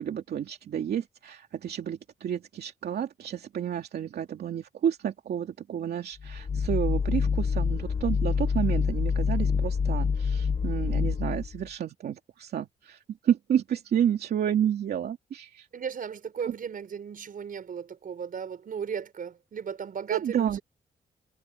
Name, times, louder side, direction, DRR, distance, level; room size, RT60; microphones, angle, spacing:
voice 1, 0.0-15.7 16.4-16.5 20.1-20.6, right 9 dB, 75° right, 2.7 m, -30 dB
sound 1, 6.2-11.7, left 5 dB, 40° left, 1.5 m, -27 dB
voice 2, 15.7-20.6, right 7 dB, 60° right, 6.0 m, -36 dB
cardioid pair, 95°, 17 cm